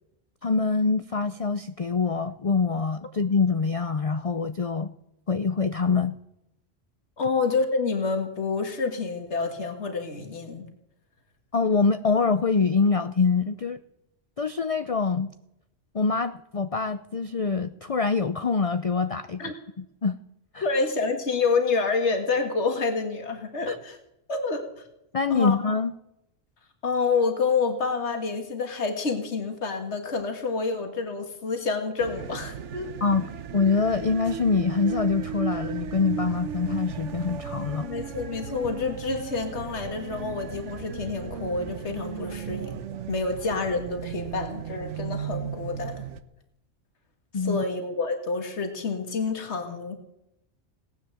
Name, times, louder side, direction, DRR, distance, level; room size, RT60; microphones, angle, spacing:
voice 1, 0.4-4.9 5.3-6.1 11.5-13.8 14.4-15.3 15.9-19.4 20.0-20.2 20.5-20.6 23.7-23.8 25.1-25.9 33.0-37.9 47.3-47.6, left 4 dB, 45° left, 11 dB, 0.5 m, -25 dB
voice 2, 7.2-10.7 19.4-19.5 20.6-24.0 24.3-24.6 25.3-25.6 26.8-32.9 37.8-42.8 43.1-46.0 47.3-50.0, left 4 dB, 60° left, 5 dB, 2.2 m, -28 dB
sound 1, 32.0-46.2, right 8 dB, 70° right, 1.2 m, -36 dB
18.0 x 10.0 x 7.7 m, 0.83 s
omnidirectional pair, 1.3 m